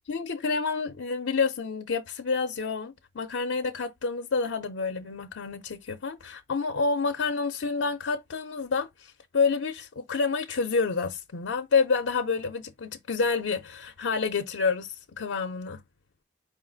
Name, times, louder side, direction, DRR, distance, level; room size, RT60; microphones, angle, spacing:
voice 1, 0.1-15.8, left 4 dB, 85° left, 0.5 m, -28 dB
5.0 x 2.4 x 3.8 m
head